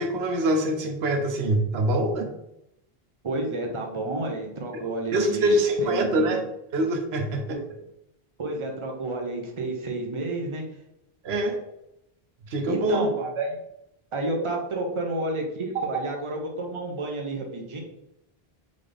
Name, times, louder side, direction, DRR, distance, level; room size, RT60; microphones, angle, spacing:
voice 1, 0.0-2.3 4.7-6.4 6.7-7.6 11.2-11.6 12.5-13.1, right 1 dB, 85° right, 4 dB, 0.9 m, -24 dB
voice 2, 3.2-6.3 7.5-7.6 8.4-10.6 12.7-13.6 14.1-17.8, right 2 dB, 30° right, 1 dB, 0.8 m, -30 dB
3.8 x 3.7 x 3.4 m, 0.82 s
omnidirectional pair, 1.0 m